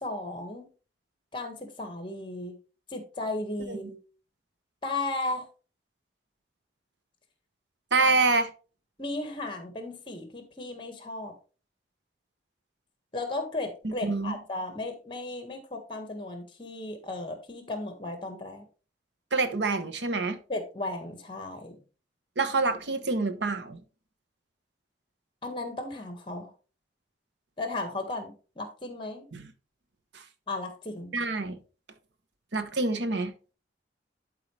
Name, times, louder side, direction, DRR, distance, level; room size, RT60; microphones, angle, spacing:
voice 1, 0.0-0.7 1.3-2.6 2.9-4.0 4.8-5.5 9.0-11.3 13.1-18.6 20.5-21.8 25.4-26.5 27.6-29.2 30.5-31.1, left 2 dB, 25° left, 1.6 m, -35 dB
voice 2, 7.9-8.5 13.8-14.3 19.3-20.4 22.4-23.8 29.3-29.4 30.1-30.2 31.1-31.6 32.5-33.3, right 3 dB, 75° right, 1.0 m, -26 dB
11.5 x 4.7 x 3.3 m
head